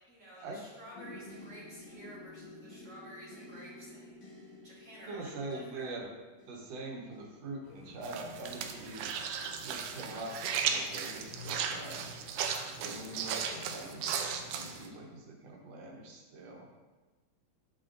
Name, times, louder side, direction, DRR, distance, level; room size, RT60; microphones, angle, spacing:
voice 1, 0.1-5.9 13.0-13.3, equal, 35° right, -7 dB, 1.3 m, -52 dB
sound 1, 0.9-12.8 13.5-13.9 14.3-14.6, left 2 dB, 65° left, 2.7 m, -53 dB
voice 2, 5.1-6.1 6.5-9.1 9.4-10.3 10.7-12.1 12.8-14.4 14.7-16.7, right 2 dB, 65° right, -1 dB, 2.0 m, -43 dB
sound 2, 7.6-14.8, left 3 dB, 80° left, 2.5 m, -51 dB
sound 3, 8.0-14.9, right 7 dB, 85° right, 2.1 m, -36 dB
12.0 x 4.3 x 2.6 m, 1.3 s
omnidirectional pair, 3.6 m